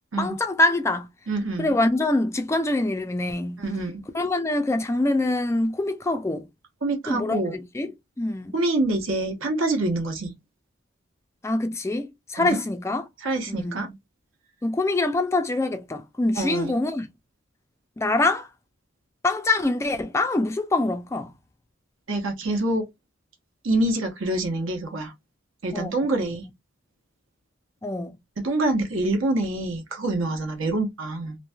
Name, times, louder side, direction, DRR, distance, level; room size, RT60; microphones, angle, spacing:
voice 1, 0.2-1.1 1.6-3.6 4.1-6.5 7.1-7.9 8.2-8.5 11.4-13.1 13.5-13.9 14.6-17.1 18.0-18.5 19.2-21.3 25.7-25.9 27.8-28.2, left 2 dB, 15° left, 0.3 m, -24 dB
voice 2, 1.3-1.7 3.6-4.0 6.8-7.5 8.5-10.3 12.4-12.6 13.2-14.0 16.4-16.7 22.1-22.8 23.6-25.1 25.6-26.5 28.4-31.4, right 2 dB, 80° right, 1.0 m, -26 dB
3.0 x 2.6 x 2.2 m
head